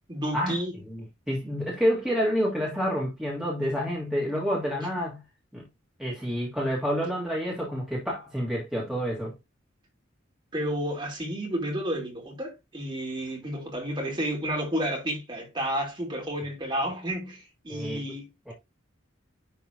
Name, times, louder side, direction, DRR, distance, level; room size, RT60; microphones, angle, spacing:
voice 1, 0.1-0.8 10.5-18.5, equal, 25° right, 2.8 m, -31 dB
voice 2, 0.9-5.2 5.5-5.6 6.0-9.3 17.7-18.0 18.5-18.6, equal, 5° right, 2.0 m, -28 dB
10.0 x 3.7 x 2.9 m
head